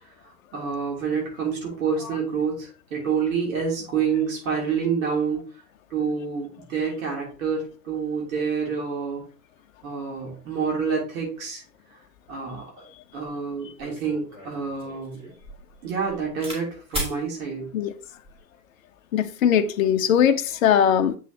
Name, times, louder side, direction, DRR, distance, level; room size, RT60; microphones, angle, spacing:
voice 1, 0.2-5.4 5.9-9.2 9.8-11.6 11.9-12.0 12.3-12.8 13.1-15.2 15.8-17.7, right 6 dB, 55° right, 3.3 m, -28 dB
sound 1, 13.3-13.4 13.8-16.6 16.9-17.2 18.0-18.4, equal, 10° right, 3.1 m, -35 dB
voice 2, 19.1-21.2, left 9 dB, 55° left, 0.9 m, -20 dB
8.1 x 6.0 x 2.9 m
hypercardioid pair, 120°, 50 cm